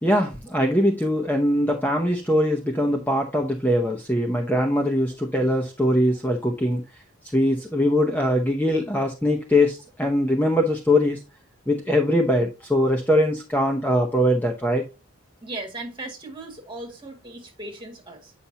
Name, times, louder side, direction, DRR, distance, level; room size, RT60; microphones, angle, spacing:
voice 1, 0.0-6.8 7.3-11.2 11.7-14.8, left 1 dB, 10° left, 0.7 m, -22 dB
voice 2, 15.4-18.3, right 2 dB, 20° right, 2.0 m, -37 dB
8.5 x 5.6 x 2.8 m
head